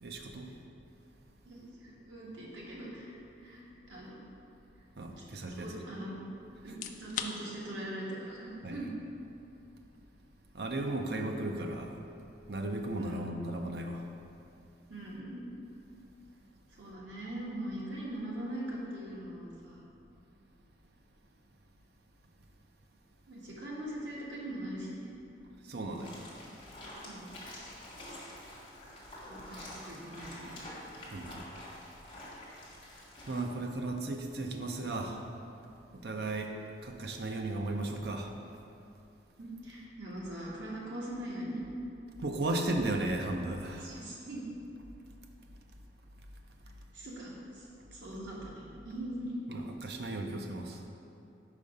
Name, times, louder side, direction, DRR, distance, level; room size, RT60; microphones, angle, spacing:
voice 1, 0.0-0.5 5.0-5.7 8.6-8.8 10.5-12.0 12.5-14.0 25.7-26.2 31.1-31.6 33.3-35.2 36.0-36.5 36.8-38.3 42.2-43.9 49.5-50.8, right 2 dB, 60° right, 3 dB, 0.5 m, -35 dB
voice 2, 1.4-3.6 3.9-4.2 5.2-5.3 5.6-6.2 6.6-8.9 12.9-13.2 14.9-15.4 16.7-19.8 23.3-25.1 27.0-27.3 29.2-30.6 39.4-41.6 43.8-44.4 46.9-49.4, right 1 dB, 90° right, -5 dB, 1.4 m, -41 dB
sound 1, 6.6-21.5, left 7 dB, 45° left, 0.3 m, -51 dB
sound 2, 25.9-33.4, left 1 dB, 30° left, 1.4 m, -47 dB
5.0 x 4.7 x 5.4 m, 2.7 s
head